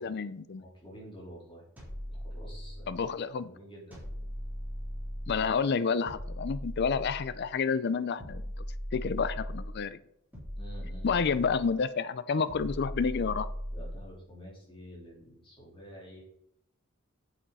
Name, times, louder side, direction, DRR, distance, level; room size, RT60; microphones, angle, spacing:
voice 1, 0.0-0.6 2.9-3.5 5.3-8.4 8.9-10.0 11.0-13.5, left 5 dB, 50° left, 15 dB, 0.4 m, -29 dB
voice 2, 0.6-1.6 2.1-3.0 3.5-4.0 10.5-11.1 13.7-16.2, equal, 25° left, -4 dB, 3.8 m, -49 dB
sound 1, 1.8-3.1 3.9-5.5 6.0-7.5 8.2-9.8 10.3-11.7 12.5-14.1, equal, 10° right, 3.3 m, -39 dB
8.7 x 7.6 x 4.1 m, 0.74 s
head